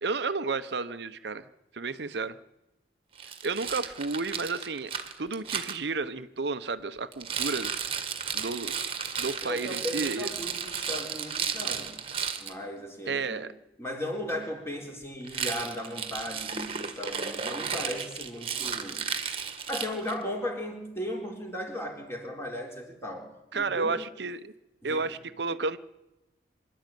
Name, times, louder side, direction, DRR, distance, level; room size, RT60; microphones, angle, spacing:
voice 1, 0.0-1.4 1.7-2.4 3.4-4.9 5.2-7.7 8.3-8.8 9.2-10.3 13.1-13.5 23.5-24.5 24.8-25.8, right 4 dB, 65° right, 11 dB, 0.8 m, -31 dB
Rattle, 3.2-5.8 7.1-12.5 15.2-20.2, right 6 dB, 30° right, 1.7 m, -34 dB
voice 2, 9.4-12.0 12.4-13.4 13.8-19.0 19.7-24.0 24.8-25.2, left 1 dB, 15° left, 1 dB, 4.0 m, -36 dB
25.0 x 12.0 x 9.2 m, 0.98 s
head